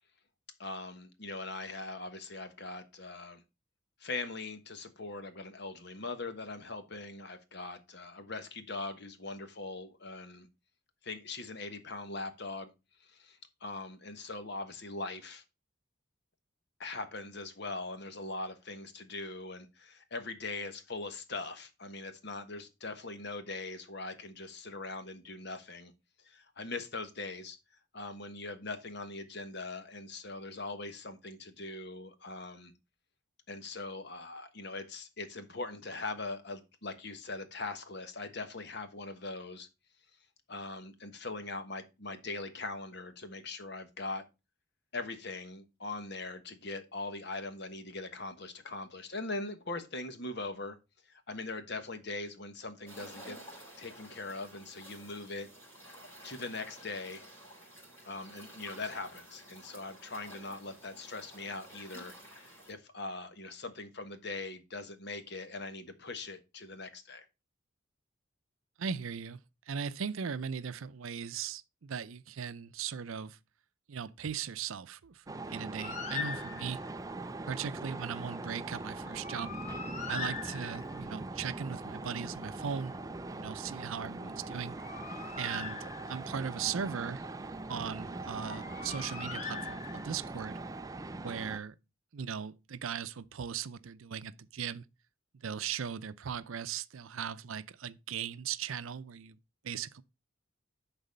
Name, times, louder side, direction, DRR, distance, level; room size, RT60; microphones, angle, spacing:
voice 1, 0.6-3.4 4.0-10.5 11.0-12.7 13.0-15.4 16.8-25.9 26.2-27.6 27.9-32.7 33.5-39.7 40.5-44.2 44.9-50.8 51.1-53.4 53.8-55.5 56.2-57.2 58.0-67.2, left 3 dB, 55° left, 1.3 m, -41 dB
sound 1, 52.9-62.7, right 1 dB, 10° left, 3.6 m, -52 dB
voice 2, 68.8-69.4 69.7-73.4 73.9-76.8 77.5-79.5 80.1-82.9 83.3-84.8 85.4-87.3 87.7-90.6 91.2-91.8 92.1-94.8 95.3-99.4 99.6-100.0, right 7 dB, 80° right, 0.5 m, -38 dB
sound 2, 75.3-91.6, right 2 dB, 15° right, 0.4 m, -41 dB
Bird, 75.8-77.0 79.0-81.1 84.5-86.4 88.4-90.3, left 6 dB, 35° left, 1.0 m, -42 dB
10.5 x 4.1 x 5.3 m
head